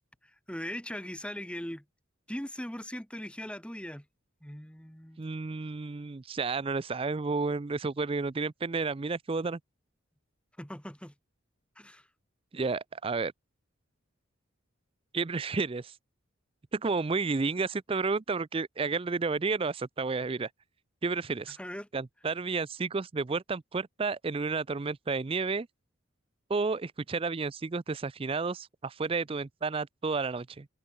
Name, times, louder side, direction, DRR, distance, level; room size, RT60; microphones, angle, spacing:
voice 1, 0.5-1.8 2.3-4.0 4.4-5.2 10.6-11.1 11.8-12.0 21.6-21.9, equal, 5° left, 3.1 m, -39 dB
voice 2, 5.2-9.6 12.5-13.3 15.1-15.9 16.7-20.5 21.0-21.6 21.9-25.7 26.5-30.7, right 4 dB, 25° right, 0.4 m, -31 dB
head